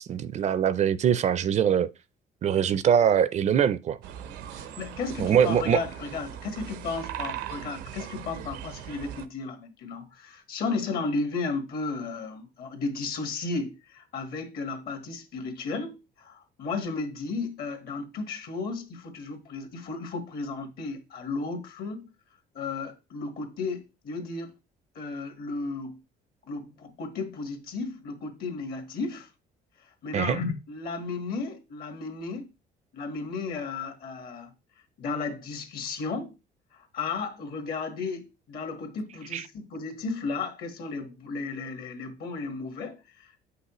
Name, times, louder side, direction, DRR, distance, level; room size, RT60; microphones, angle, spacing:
voice 1, 0.0-1.9 2.4-4.0 5.2-5.8 30.1-30.4 39.3-39.5, right 8 dB, 45° right, 0.4 m, -23 dB
sound 1, 4.0-9.3, right 10 dB, 90° right, 0.7 m, -39 dB
voice 2, 4.5-22.1 22.5-24.5 24.9-26.0 26.5-29.3 30.0-32.5 32.9-34.5 35.0-36.3 36.7-43.4, left 4 dB, 65° left, 1.6 m, -34 dB
7.9 x 5.6 x 3.0 m
cardioid pair, 110°, 17 cm